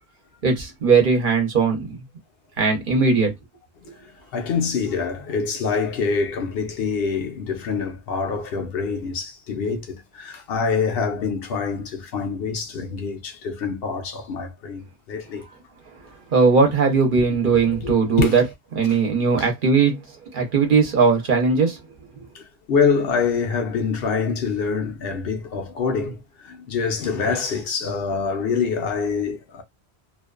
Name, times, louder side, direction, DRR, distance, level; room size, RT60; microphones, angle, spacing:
voice 1, 0.4-2.0 2.6-3.3 16.3-18.4 18.8-20.0 20.3-21.8 22.2-22.3, right 5 dB, 55° right, 0.9 m, -19 dB
voice 2, 3.9-15.5 17.1-17.3 17.7-18.4 18.9-19.0 22.3-29.6, left 5 dB, 65° left, 0.8 m, -25 dB
2.5 x 2.2 x 2.3 m
omnidirectional pair, 1.1 m